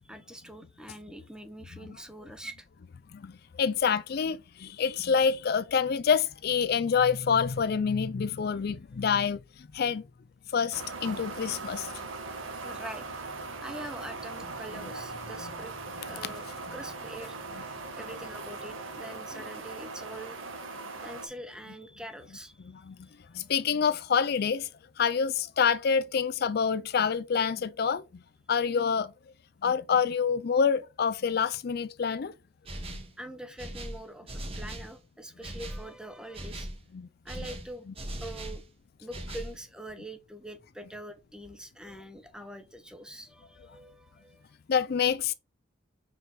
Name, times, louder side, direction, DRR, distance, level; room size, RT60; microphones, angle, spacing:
voice 1, 0.0-2.7 12.6-13.0 13.3-15.8 16.1-17.4 18.0-20.4 21.0-22.7 33.2-36.7 37.2-37.9 38.2-38.6 39.0-44.5, right 1 dB, 5° right, 0.8 m, -44 dB
voice 2, 3.6-9.4 9.7-10.0 10.5-11.9 16.2-16.3 22.7-23.1 23.3-24.7 25.0-28.0 28.5-29.1 29.6-32.3 32.9-33.0 36.9-37.1 37.4-37.5 44.7-45.3, left 6 dB, 50° left, 0.4 m, -27 dB
sound 1, 10.7-21.3, right 3 dB, 75° right, 1.6 m, -40 dB
sound 2, 32.6-33.1 33.6-34.9 35.4-35.9 36.3-36.8 37.3-38.6 39.1-39.6, right 1 dB, 30° right, 1.3 m, -39 dB
5.0 x 4.9 x 5.8 m
head